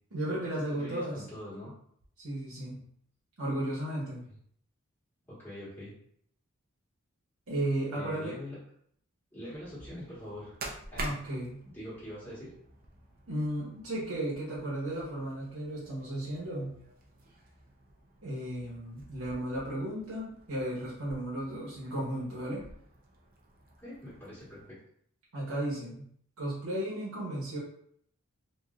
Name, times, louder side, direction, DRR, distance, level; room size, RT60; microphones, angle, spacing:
voice 1, 0.1-1.2 2.2-2.8 3.4-4.3 7.5-8.3 10.9-11.6 13.3-16.7 18.2-22.6 25.3-26.0 26.4-27.6, right 1 dB, 90° right, -7 dB, 0.9 m, -34 dB
voice 2, 0.7-1.7 5.3-5.9 7.9-8.6 9.3-10.6 10.9-11.1 11.6-12.5 23.8-24.8, equal, 10° left, -12 dB, 1.3 m, -43 dB
sound 1, 9.5-24.7, right 2 dB, 40° right, 0.5 m, -49 dB
3.1 x 2.6 x 2.4 m, 0.66 s
head